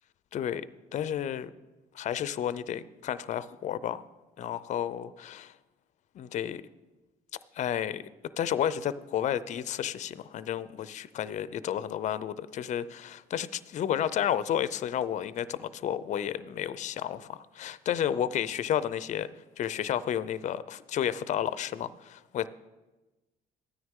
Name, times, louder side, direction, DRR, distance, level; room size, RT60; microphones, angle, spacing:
voice 1, 0.3-0.7 0.9-1.5 1.9-4.0 4.4-5.5 6.2-6.6 7.6-8.0 8.4-19.3 19.6-22.5, left 10 dB, 45° left, 16 dB, 0.4 m, -31 dB
14.0 x 9.5 x 3.6 m, 1.1 s
cardioid pair, 110°, 17 cm